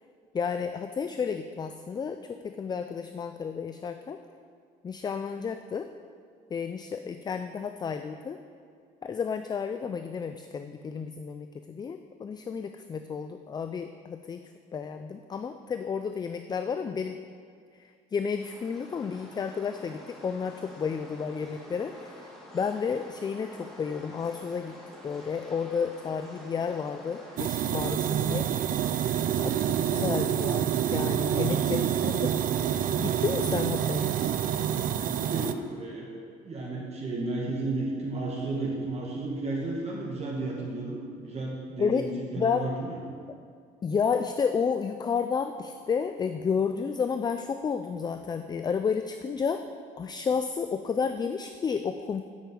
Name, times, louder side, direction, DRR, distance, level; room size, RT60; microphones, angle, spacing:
voice 1, 0.3-4.2 4.8-5.9 6.5-8.4 9.0-14.4 14.7-17.2 17.8-22.2 22.5-24.8 25.0-28.5 29.4-32.3 33.0-34.3 41.8-42.1 42.4-42.7 43.8-49.6 50.0-52.3, left 6 dB, 25° left, 8 dB, 0.4 m, -31 dB
sound 1, 18.4-35.6, equal, ahead, 2.9 m, -47 dB
sound 2, 27.4-35.5, right 10 dB, 55° right, 0.5 m, -27 dB
voice 2, 31.3-31.7 34.8-43.0, right 2 dB, 40° right, -3 dB, 1.9 m, -33 dB
10.0 x 5.3 x 7.6 m, 2.2 s
cardioid pair, 110°, 17 cm